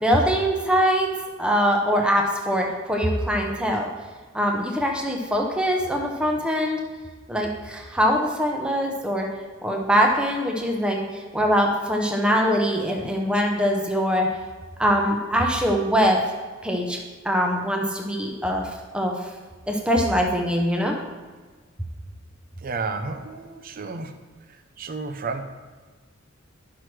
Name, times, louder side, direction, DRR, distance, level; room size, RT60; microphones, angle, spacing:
voice 1, 0.0-1.1 1.4-3.9 4.3-6.8 7.3-9.3 9.6-14.3 14.8-16.2 16.6-17.0 17.2-19.2 19.7-20.9, equal, 5° right, 0 dB, 0.7 m, -23 dB
voice 2, 22.6-24.1 24.5-25.4, right 4 dB, 45° right, 8 dB, 0.6 m, -32 dB
11.0 x 6.0 x 3.2 m, 1.4 s
head